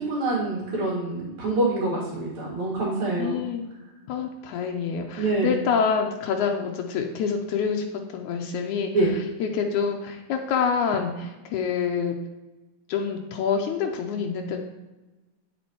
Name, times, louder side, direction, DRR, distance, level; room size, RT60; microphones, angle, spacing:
voice 1, 0.0-3.4 5.2-5.6 8.9-9.1, right 2 dB, 55° right, -5 dB, 3.0 m, -25 dB
voice 2, 3.2-3.7 4.1-7.8 8.1-8.9 9.4-12.2 12.9-14.6, left 6 dB, 90° left, 2 dB, 1.7 m, -26 dB
9.2 x 8.4 x 3.0 m, 1.1 s
omnidirectional pair, 4.3 m